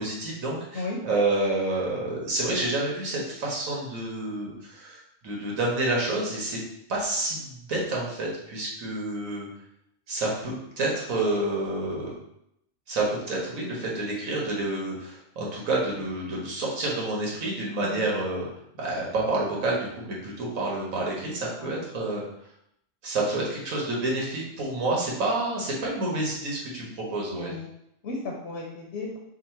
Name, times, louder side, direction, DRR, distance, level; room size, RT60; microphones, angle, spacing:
voice 1, 0.0-6.6 6.9-9.5 10.1-12.1 12.9-18.4 18.7-22.2 23.0-27.5, right 2 dB, 85° right, -3 dB, 1.5 m, -29 dB
voice 2, 21.6-22.2 27.3-27.7 28.0-29.2, left 3 dB, 60° left, -2 dB, 0.9 m, -35 dB
3.7 x 2.2 x 4.3 m, 0.76 s
omnidirectional pair, 1.4 m